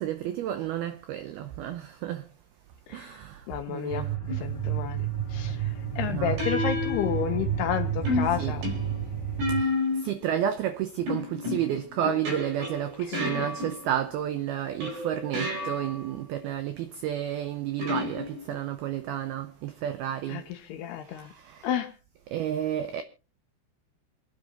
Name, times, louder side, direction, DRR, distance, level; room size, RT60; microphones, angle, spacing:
voice 1, 0.0-2.2 2.9-4.2 6.1-6.4 8.4-8.6 9.5-9.7 10.0-20.4 21.2-21.7 22.3-23.0, right 11 dB, 90° right, 2.1 m, -31 dB
voice 2, 2.9-3.2 3.5-8.7 13.0-13.5 20.3-21.3 21.6-21.9, left 10 dB, 75° left, 2.6 m, -32 dB
sound 1, 3.9-9.6, right 9 dB, 40° left, 0.4 m, -31 dB
sound 2, 4.3-4.6 6.4-7.6 8.0-10.2 11.1-14.1 14.8-16.1 17.8-18.7, left 2 dB, 50° right, 5.4 m, -31 dB
27.5 x 9.3 x 2.9 m
omnidirectional pair, 5.6 m